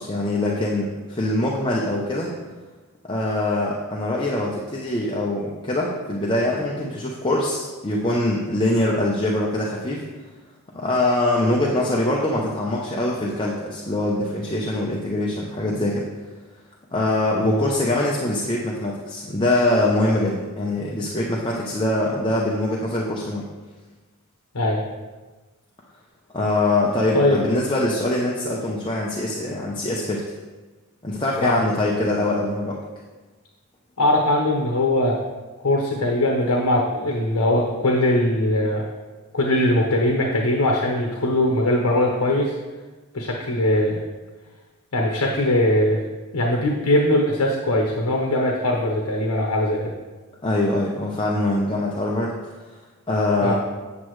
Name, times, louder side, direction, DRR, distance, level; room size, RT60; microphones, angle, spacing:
voice 1, 0.0-2.3 3.1-10.0 10.7-16.1 16.9-23.4 26.3-30.2 31.0-32.8 50.4-52.3 53.1-53.5, left 1 dB, 20° left, -3 dB, 0.7 m, -23 dB
voice 2, 34.0-35.2 35.6-38.8 39.3-42.5 43.1-44.0 44.9-46.0 46.3-49.9 53.4-53.5, left 1 dB, 75° left, 0 dB, 1.0 m, -21 dB
8.4 x 7.3 x 3.2 m, 1.3 s
head